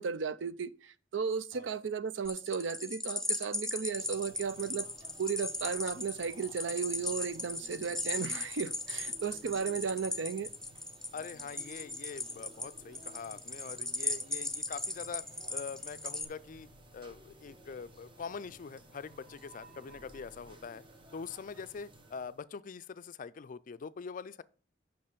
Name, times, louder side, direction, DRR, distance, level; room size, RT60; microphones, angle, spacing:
voice 1, 0.0-4.9 5.2-10.5, right 6 dB, 80° right, 0.5 m, -35 dB
sound 1, 2.2-16.2, left 2 dB, 5° left, 0.6 m, -38 dB
sound 2, 3.8-22.4, right 1 dB, 30° right, 1.0 m, -57 dB
voice 2, 11.1-20.8 21.1-24.4, left 5 dB, 45° left, 0.4 m, -44 dB
sound 3, 14.8-20.5, right 2 dB, 50° right, 1.5 m, -61 dB
5.7 x 5.5 x 6.7 m
head